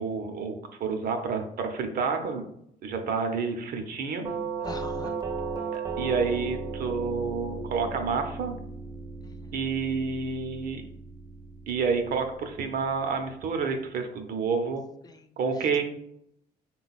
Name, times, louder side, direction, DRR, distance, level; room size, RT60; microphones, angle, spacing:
voice 1, 0.0-2.4 2.8-4.3 5.7-8.6 9.5-10.8 11.7-14.8 15.4-15.8, right 5 dB, 60° right, 5 dB, 0.7 m, -29 dB
Doorbell, 4.2-13.1, right 4 dB, 25° right, 0.6 m, -36 dB
voice 2, 4.6-5.2 9.2-9.5 15.0-15.7, left 4 dB, 25° left, 8 dB, 0.4 m, -45 dB
3.8 x 2.3 x 4.0 m, 0.71 s
cardioid pair, 110°, 17 cm